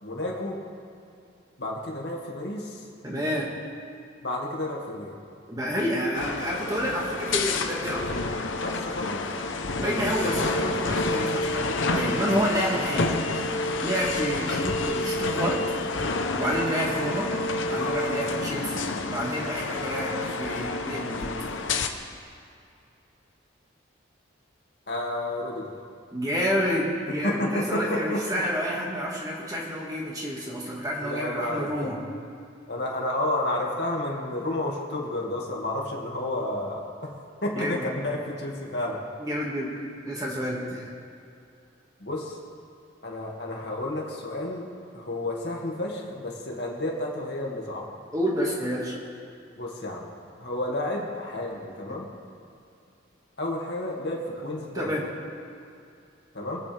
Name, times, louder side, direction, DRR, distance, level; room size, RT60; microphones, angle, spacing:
voice 1, 0.0-0.6 1.6-2.8 4.2-5.2 8.6-9.2 9.5-10.7 12.2-12.6 24.9-25.8 27.2-28.4 28.7-28.9 31.0-32.0 32.7-37.1 37.4-39.0 42.0-42.4 43.0-44.7 44.9-47.9 49.6-50.1 50.4-52.1 53.4-54.9 56.3-56.6, left 1 dB, 60° left, -2 dB, 2.2 m, -31 dB
voice 2, 3.0-3.5 5.5-8.3 9.8-13.2 13.8-15.6 16.3-17.3 17.7-18.9 19.1-21.3 26.1-32.0 37.6-37.9 39.2-40.9 48.1-49.0 54.7-55.1, equal, 20° right, -3 dB, 2.0 m, -29 dB
sound 1, 6.1-21.9, left 2 dB, 90° left, 0.9 m, -29 dB
25.0 x 8.8 x 3.5 m, 2.5 s
head